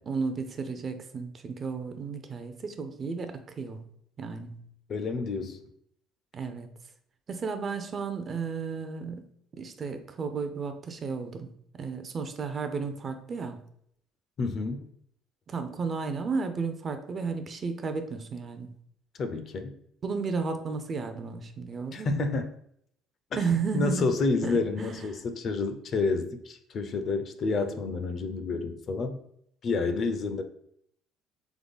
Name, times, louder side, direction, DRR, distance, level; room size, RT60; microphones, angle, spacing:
voice 1, 0.1-3.9 4.2-4.6 6.3-6.7 7.3-9.3 9.6-11.5 11.8-13.6 15.5-18.7 20.0-22.2 23.4-24.2 24.4-25.1, right 5 dB, 30° right, 8 dB, 0.4 m, -33 dB
voice 2, 4.9-5.6 14.4-14.8 19.2-19.7 21.9-22.5 23.3-23.4 23.7-29.2 29.6-30.4, left 3 dB, 35° left, 8 dB, 0.4 m, -29 dB
3.7 x 3.5 x 3.9 m, 0.70 s
cardioid pair, 165°, 0 cm